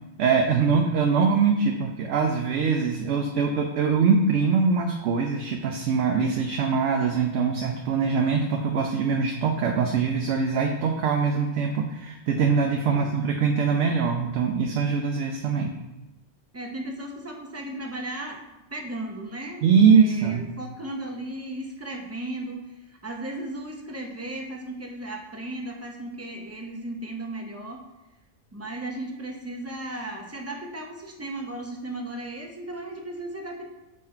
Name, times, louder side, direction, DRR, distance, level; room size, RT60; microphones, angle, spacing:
voice 1, 0.2-15.8 19.6-20.5, right 5 dB, 75° right, 2 dB, 0.9 m, -23 dB
voice 2, 12.8-13.2 16.5-18.4 18.7-19.6 19.9-27.8 28.5-33.7, right 1 dB, 20° right, 1 dB, 0.4 m, -36 dB
6.3 x 3.9 x 4.3 m, 0.98 s
omnidirectional pair, 1.3 m